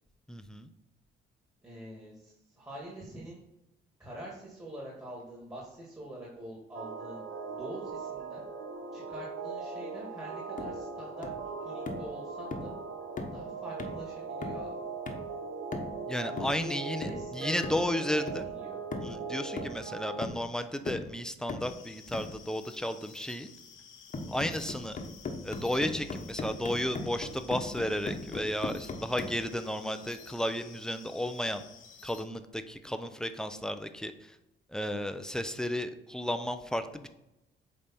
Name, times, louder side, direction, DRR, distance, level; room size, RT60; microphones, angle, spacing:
voice 1, 0.3-0.7 16.1-18.5 19.0-23.5 24.3-25.0 25.4-31.6 32.0-34.4 34.7-37.1, left 1 dB, 5° left, 9 dB, 0.6 m, -33 dB
voice 2, 1.6-3.4 4.0-8.4 8.9-11.3 11.6-12.7 13.3-14.8 16.3-18.2 18.6-18.8 32.8-32.9, right 1 dB, 15° right, -4 dB, 2.0 m, -44 dB
sound 1, 6.7-20.3, right 4 dB, 85° right, 0.9 m, -40 dB
sound 2, 10.6-10.8 11.2-11.5 11.9-12.1 12.5-12.8 13.2-13.4 13.8-14.0 14.4-14.7 15.1-15.3 15.7-16.0 16.4-16.6 17.0-17.3 17.6-17.9 18.3-18.5 18.9-19.2 19.6-19.9 20.2-20.5 20.9-21.1 21.5-21.8 22.1-22.4 24.1-29.4, left 3 dB, 40° left, 1.2 m, -39 dB
sound 3, 21.6-32.2, left 7 dB, 75° left, 1.1 m, -53 dB
8.7 x 3.4 x 4.3 m, 0.92 s
cardioid pair, 90°, 20 cm